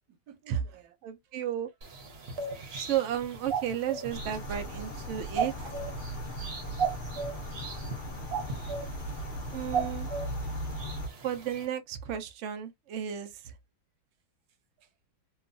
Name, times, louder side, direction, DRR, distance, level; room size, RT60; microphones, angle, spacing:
voice 1, 0.1-1.0 1.2-1.3 5.5-6.1 14.8-14.9, right 6 dB, 70° right, 1.1 m, -54 dB
voice 2, 1.0-1.7 2.8-5.5 9.5-10.1 11.2-13.3, right 10 dB, 90° right, 0.6 m, -33 dB
sound 1, 1.8-11.7, right 6 dB, 50° right, 0.8 m, -37 dB
sound 2, 4.1-11.1, equal, 70° left, 0.4 m, -38 dB
2.9 x 2.3 x 2.5 m
omnidirectional pair, 1.9 m